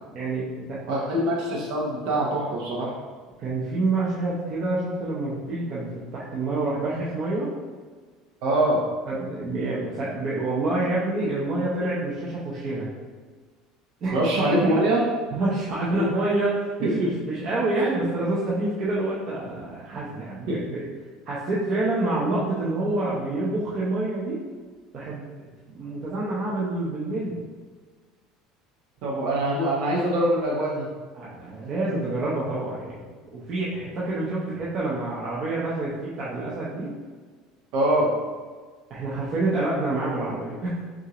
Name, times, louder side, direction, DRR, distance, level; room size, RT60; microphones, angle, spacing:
voice 1, 0.1-0.8 3.4-7.5 9.1-12.9 14.0-14.1 15.3-20.8 21.3-24.4 24.9-25.2 25.7-27.4 31.1-33.1 33.3-36.9 38.9-40.8, right 2 dB, 35° right, -8 dB, 0.7 m, -27 dB
voice 2, 0.9-2.9 8.4-8.8 14.1-15.0 15.9-16.1 16.8-17.1 20.5-20.6 29.0-30.9 37.7-38.1, right 1 dB, 65° right, -4 dB, 0.8 m, -23 dB
6.0 x 2.5 x 2.9 m, 1.5 s
cardioid pair, 170°, 0 cm